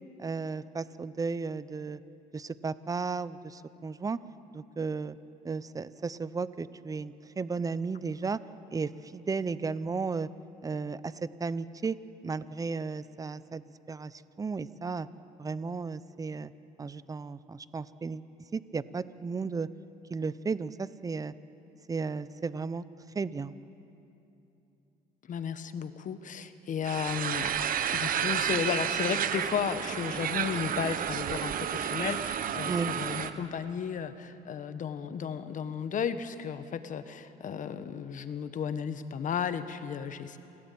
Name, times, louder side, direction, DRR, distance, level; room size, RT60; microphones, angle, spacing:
voice 1, 0.2-2.0 2.3-4.2 4.5-5.2 5.4-8.4 8.7-10.3 10.6-12.0 12.2-15.1 15.4-16.5 16.8-18.2 18.5-19.7 20.1-21.3 21.9-22.8 23.1-23.6 32.7-32.9, right 4 dB, 20° right, 16 dB, 0.7 m, -34 dB
voice 2, 25.3-27.6 27.9-40.4, left 7 dB, 50° left, 11 dB, 1.3 m, -34 dB
sound 1, 26.9-33.3, right 9 dB, 55° right, 1.2 m, -31 dB
28.0 x 17.0 x 8.6 m, 2.9 s
cardioid pair, 110°, 17 cm